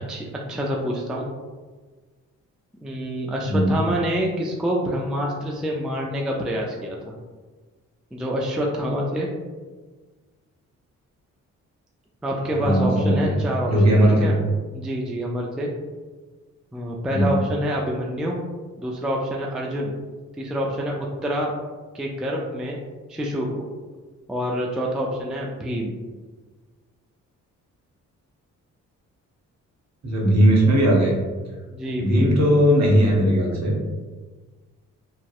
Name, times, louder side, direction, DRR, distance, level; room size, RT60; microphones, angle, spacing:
voice 1, 0.1-1.3 2.8-7.1 8.1-9.3 12.2-13.7 14.2-14.3 14.7-15.7 16.7-18.4 18.8-19.9 20.4-21.5 21.9-22.8 23.1-23.6 24.3-26.0 31.7-32.4, equal, ahead, -2 dB, 0.3 m, -27 dB
voice 2, 3.4-3.8 12.6-13.4 13.7-14.4 17.1-17.4 30.0-31.2 32.0-33.7, equal, 50° right, -2 dB, 0.9 m, -18 dB
2.5 x 2.1 x 2.3 m, 1.3 s
supercardioid pair, 50°, 34 cm